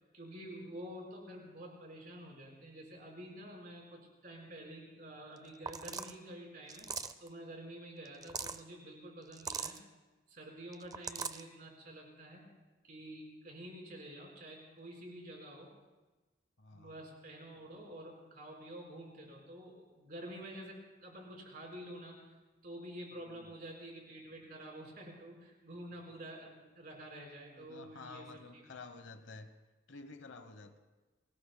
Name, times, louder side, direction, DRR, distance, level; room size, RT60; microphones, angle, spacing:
voice 1, 0.1-6.9 7.2-9.8 10.3-12.5 12.8-15.7 16.7-22.3 22.6-28.8, right 1 dB, 45° right, -1 dB, 4.6 m, -49 dB
sound 1, 5.4-5.5 5.7-6.2 6.7-7.3 8.1-8.6 9.3-9.8 10.7-11.4, right 5 dB, 20° right, 0.4 m, -40 dB
voice 2, 16.6-16.9 23.2-23.5 27.5-29.5 29.9-30.8, left 3 dB, 65° left, 10 dB, 1.0 m, -51 dB
30.0 x 19.5 x 2.2 m, 1.2 s
head